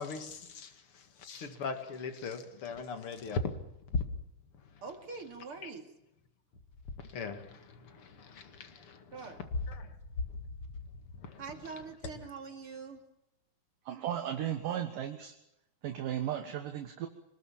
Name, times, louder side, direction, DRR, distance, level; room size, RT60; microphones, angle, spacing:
voice 1, 0.0-3.4 5.6-5.7 7.0-9.2 9.7-10.0 11.2-11.4, left 4 dB, 45° left, 2.2 m, -40 dB
voice 2, 4.8-5.9 9.1-9.4 11.4-13.0, right 5 dB, 40° right, 2.8 m, -44 dB
voice 3, 13.9-15.4 15.8-17.1, right 10 dB, 65° right, 2.7 m, -35 dB
25.5 x 19.5 x 7.3 m
omnidirectional pair, 4.5 m